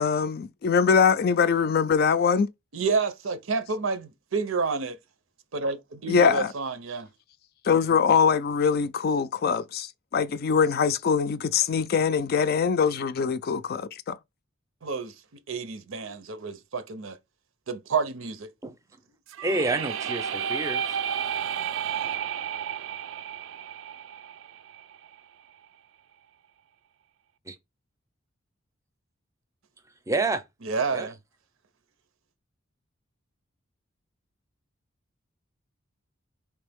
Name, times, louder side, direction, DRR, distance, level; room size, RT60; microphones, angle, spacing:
voice 1, 0.0-2.5 6.1-6.5 7.6-14.2, left 6 dB, 50° left, 0.4 m, -23 dB
voice 2, 2.7-5.0 5.5-7.1 14.8-15.1 15.5-17.2 17.7-18.5 30.6-31.1, right 4 dB, 90° right, 0.7 m, -29 dB
sound 1, 19.3-25.1, right 8 dB, 65° right, 0.3 m, -32 dB
voice 3, 19.4-21.0 27.5-27.6 30.1-30.4 30.9-31.1, right 2 dB, 15° right, 0.5 m, -28 dB
4.4 x 3.3 x 3.5 m
head